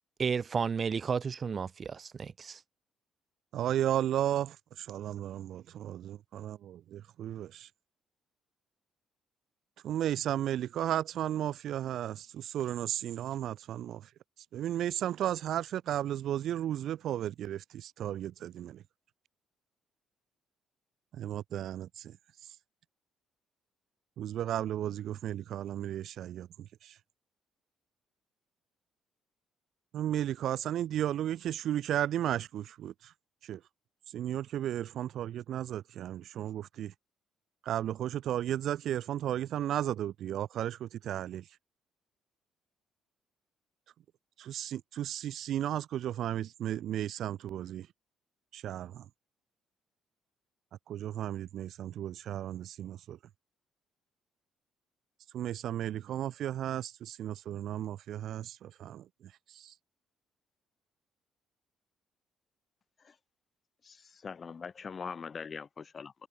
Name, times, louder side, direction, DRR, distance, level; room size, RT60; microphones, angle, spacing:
voice 1, 0.2-2.6, right 6 dB, 35° right, 2.6 m, -32 dB
voice 2, 3.5-7.7 9.8-14.1 14.4-18.8 21.1-22.2 22.4-22.6 24.2-27.0 29.9-33.1 33.4-33.6 34.1-36.9 37.6-41.5 44.4-47.9 48.5-49.1 50.9-53.2 55.3-59.7, right 11 dB, 65° right, 0.8 m, -34 dB
voice 3, 63.8-66.1, left 5 dB, 35° left, 1.3 m, -42 dB
cardioid pair, 125°, 0 cm